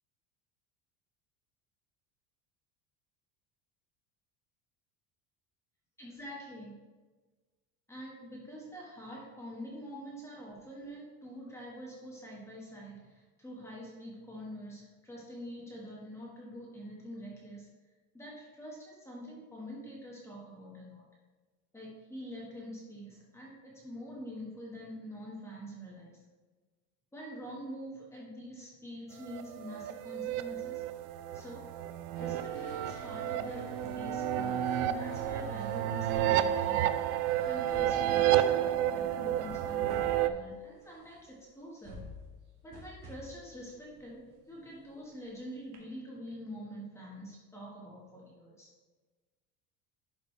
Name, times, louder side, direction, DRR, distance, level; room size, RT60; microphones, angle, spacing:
voice 1, 6.0-6.7 7.9-17.7 18.1-21.0 21.7-26.2 27.1-30.8 31.3-31.6 32.2-37.0 37.4-42.0 42.6-48.7, equal, 5° left, -5 dB, 1.7 m, -45 dB
sound 1, 29.2-40.3, right 11 dB, 65° right, 0.6 m, -31 dB
sound 2, 30.2-31.3 31.6-45.3 45.7-45.8, equal, 45° right, 1.8 m, -52 dB
sound 3, 32.1-38.2, left 2 dB, 60° left, 2.7 m, -52 dB
11.5 x 5.4 x 3.4 m, 1.3 s
cardioid pair, 170°, 38 cm